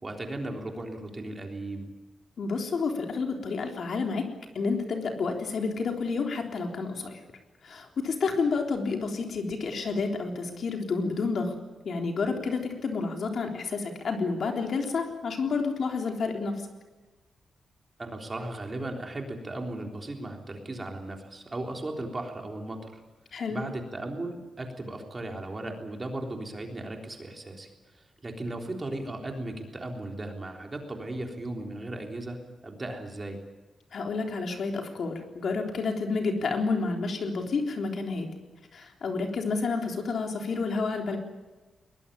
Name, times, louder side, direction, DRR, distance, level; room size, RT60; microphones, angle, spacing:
voice 1, 0.0-1.9 18.0-23.0 23.5-33.4, right 2 dB, 25° right, 2 dB, 3.6 m, -36 dB
voice 2, 2.4-4.3 4.5-7.2 7.6-11.6 11.8-16.7 23.3-23.7 33.9-38.3 38.7-41.2, left 4 dB, 55° left, 3 dB, 3.6 m, -30 dB
22.0 x 21.5 x 8.6 m, 1.2 s
wide cardioid pair, 150°, 0 cm